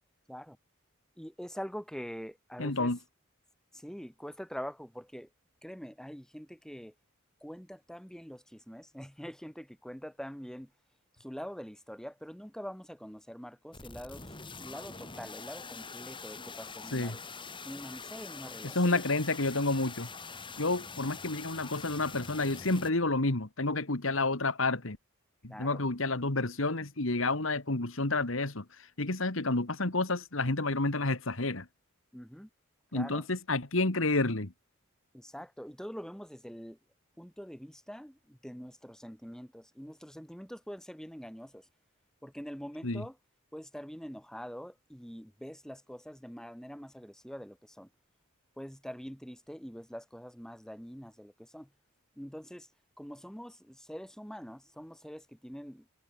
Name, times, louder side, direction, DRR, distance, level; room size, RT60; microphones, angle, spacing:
voice 1, 1.2-2.9 3.7-5.3 5.6-6.9 7.4-10.7 11.2-17.2 17.6-19.0 25.5-25.8 32.1-32.5 32.9-33.2 35.1-36.8 37.2-41.7 42.2-43.2 43.5-47.9 48.6-51.7 52.2-52.7 53.0-55.9, equal, 5° left, 5.5 m, -44 dB
voice 2, 2.6-3.0 16.9-17.2 18.7-20.1 20.6-25.0 25.4-31.7 32.9-34.5 42.8-43.0, left 2 dB, 70° left, 2.1 m, -30 dB
sound 1, 13.7-22.9, left 4 dB, 25° left, 3.9 m, -44 dB
head